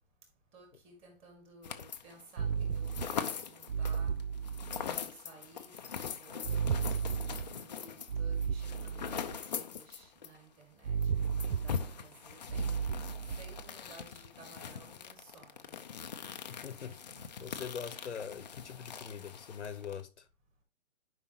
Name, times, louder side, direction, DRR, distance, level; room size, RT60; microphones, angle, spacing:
voice 1, 0.5-4.2 4.9-6.7 7.3-12.8 13.4-15.7 16.6-17.5 17.8-18.1 18.6-19.2, right 3 dB, 15° right, 1.9 m, -57 dB
sound 1, 1.6-2.2 2.5-10.4 10.6-10.7 11.0-20.0, left 7 dB, 35° left, 0.7 m, -42 dB
sound 2, 2.4-3.2 3.7-5.0 6.4-7.6 8.1-9.4 10.8-12.0 12.5-13.7, right 6 dB, 75° right, 0.7 m, -34 dB
voice 2, 16.5-17.0 17.4-20.3, left 7 dB, 60° left, 1.1 m, -42 dB
11.0 x 5.2 x 2.9 m
hypercardioid pair, 150°, 39 cm